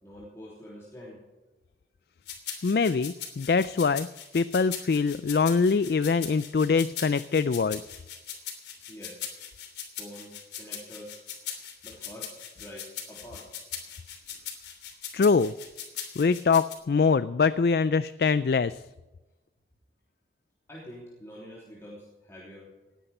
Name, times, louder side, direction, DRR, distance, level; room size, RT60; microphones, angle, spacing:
voice 1, 0.0-1.2 8.9-9.2 10.0-11.2 11.8-13.5 20.7-22.7, equal, 15° left, -6 dB, 3.2 m, -46 dB
sound 1, 2.3-16.7, left 8 dB, 75° left, 3.1 m, -40 dB
voice 2, 2.6-4.1 4.3-7.8 15.1-15.5 16.2-18.8, left 5 dB, 55° left, 15 dB, 0.4 m, -23 dB
19.0 x 10.0 x 5.5 m, 1.1 s
head